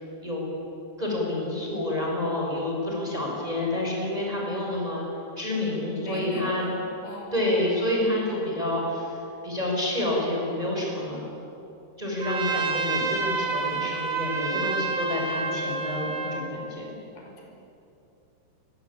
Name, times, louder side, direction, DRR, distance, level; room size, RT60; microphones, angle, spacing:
voice 1, 1.0-5.0 5.4-6.6 7.3-9.2 9.4-11.2 12.0-16.8, left 1 dB, 10° right, -2 dB, 6.4 m, -28 dB
voice 2, 6.0-7.5 7.8-8.1 17.2-17.4, left 2 dB, 70° left, 0 dB, 7.1 m, -40 dB
Trumpet, 12.2-16.5, right 4 dB, 35° right, 2.2 m, -29 dB
28.5 x 22.5 x 8.8 m, 2.9 s
omnidirectional pair, 4.6 m